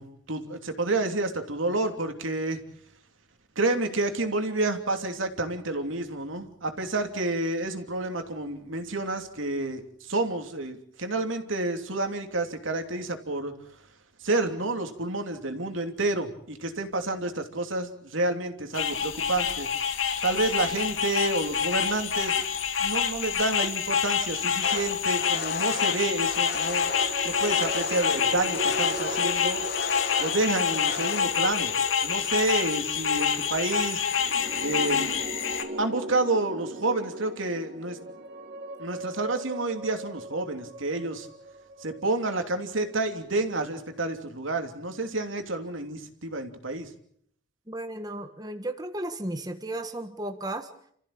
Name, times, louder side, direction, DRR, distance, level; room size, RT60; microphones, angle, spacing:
voice 1, 0.0-2.6 3.5-13.9 14.2-19.7 20.2-22.4 22.8-26.9 27.2-29.6 30.2-31.7 32.0-34.0 34.6-35.2 35.8-38.0 38.8-41.3 41.8-46.9, right 2 dB, 80° right, 6 dB, 3.0 m, -29 dB
sound 1, 18.7-35.6, left 7 dB, 80° left, 2.4 m, -27 dB
sound 2, 24.6-31.2, left 5 dB, 55° left, 1.1 m, -36 dB
sound 3, 26.7-43.0, right 1 dB, 55° right, 2.0 m, -39 dB
voice 2, 47.7-50.7, right 1 dB, 20° right, 7 dB, 1.5 m, -34 dB
29.5 x 15.0 x 8.8 m, 0.69 s
head